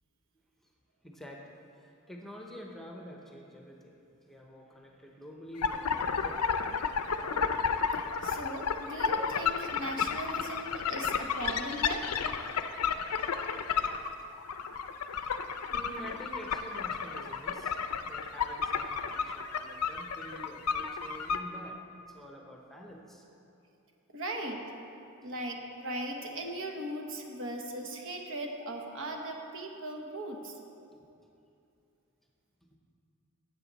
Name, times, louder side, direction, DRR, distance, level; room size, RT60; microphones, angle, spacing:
voice 1, 1.0-1.4 2.1-4.0 4.3-6.4 15.7-17.8 18.0-21.8 22.1-23.2 31.0-31.1, equal, ahead, 0 dB, 0.8 m, -47 dB
sound 1, 5.6-21.4, left 6 dB, 85° left, 0.5 m, -32 dB
voice 2, 8.2-12.1 24.1-24.6 25.2-30.6, right 1 dB, 60° right, 2 dB, 1.2 m, -38 dB
13.0 x 8.1 x 4.1 m, 2.6 s
head